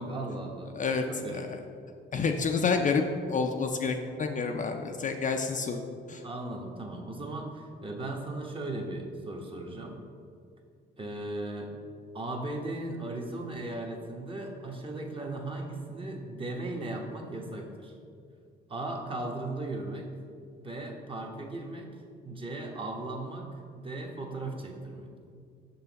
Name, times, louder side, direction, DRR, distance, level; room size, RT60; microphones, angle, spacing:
voice 1, 0.0-0.7 1.1-1.4 6.2-10.0 11.0-11.7 12.1-17.9 18.7-20.0 20.5-21.9 22.2-25.1, right 2 dB, 25° right, 1 dB, 1.0 m, -37 dB
voice 2, 2.1-3.0 3.3-5.8 6.1-6.2, left 5 dB, 40° left, 4 dB, 0.5 m, -28 dB
5.7 x 5.6 x 4.0 m, 2.3 s
cardioid pair, 90°, 20 cm